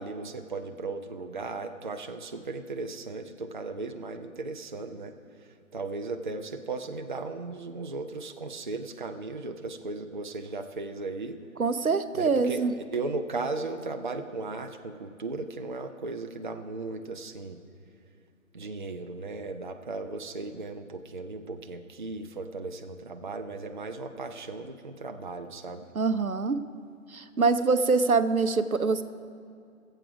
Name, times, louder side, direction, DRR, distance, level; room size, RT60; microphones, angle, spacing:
voice 1, 0.0-5.1 5.4-11.4 12.1-17.6 18.5-25.9, right 3 dB, 40° right, 6 dB, 0.5 m, -36 dB
voice 2, 11.6-12.7 25.9-26.6 27.1-29.0, right 4 dB, 85° right, 11 dB, 0.8 m, -24 dB
19.5 x 7.7 x 4.8 m, 2.5 s
figure-of-eight pair, 145°, 41 cm